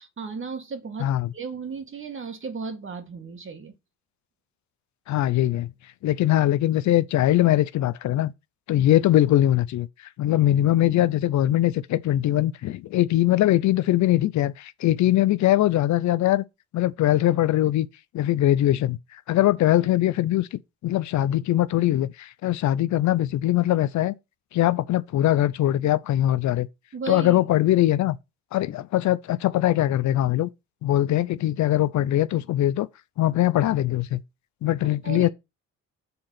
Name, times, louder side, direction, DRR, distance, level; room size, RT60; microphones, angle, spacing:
voice 1, 0.0-3.7 26.9-27.4 34.8-35.3, right 5 dB, 40° right, 2.1 m, -35 dB
voice 2, 5.1-5.7 6.0-8.3 8.7-9.9 10.2-16.4 16.7-17.9 18.1-19.0 19.3-24.1 24.5-26.7 27.1-28.2 28.5-30.5 30.8-32.9 33.2-34.2 34.6-35.3, left 13 dB, 70° left, 0.6 m, -21 dB
7.0 x 3.9 x 5.7 m
cardioid pair, 90°, 30 cm